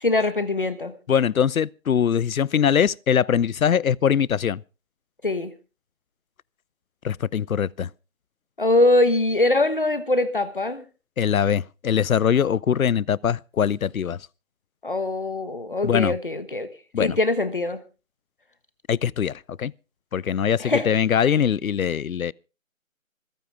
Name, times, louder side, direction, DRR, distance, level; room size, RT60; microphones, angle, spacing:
voice 1, 0.0-0.9 5.2-5.5 8.6-10.8 14.8-16.7 17.0-17.8 20.6-20.9, left 2 dB, 40° left, 1.2 m, -22 dB
voice 2, 1.1-4.6 7.0-7.9 11.2-14.2 15.8-16.1 16.9-17.2 18.9-19.7 20.1-22.3, left 8 dB, 80° left, 0.6 m, -22 dB
26.5 x 9.2 x 3.5 m
figure-of-eight pair, 175°, 41 cm